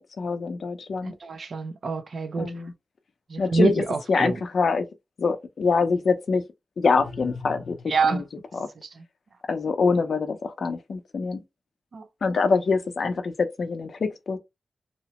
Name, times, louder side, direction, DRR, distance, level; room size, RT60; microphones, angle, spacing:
voice 1, 0.0-1.1 2.4-2.7 3.4-3.8 4.1-4.9 5.2-6.4 6.8-8.2 8.5-8.7 9.5-11.4 12.2-14.4, left 4 dB, 55° left, 0.5 m, -25 dB
voice 2, 1.0-2.5 3.3-4.4 7.9-8.2 9.0-9.1 11.9-12.0, right 4 dB, 50° right, 0.4 m, -26 dB
sound 1, 6.8-8.3, left 4 dB, 5° left, 1.0 m, -40 dB
2.8 x 2.0 x 2.8 m
wide cardioid pair, 165°, 0 cm